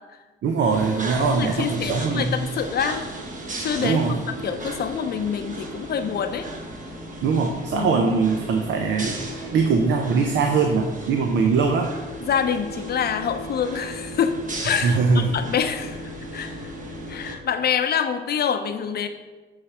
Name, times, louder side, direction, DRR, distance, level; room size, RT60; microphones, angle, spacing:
voice 1, 0.4-2.4 3.8-4.2 7.2-11.9 14.8-15.3, right 4 dB, 65° right, 3 dB, 0.7 m, -22 dB
sound 1, 0.7-17.4, right 1 dB, 40° right, 1.1 m, -35 dB
voice 2, 1.2-3.0 3.6-4.0 4.3-6.5 7.7-8.1 12.2-14.4 14.6-16.7 17.1-19.1, left 7 dB, 55° left, 9 dB, 0.6 m, -26 dB
8.5 x 3.3 x 4.9 m, 1.2 s
cardioid pair, 90°, 20 cm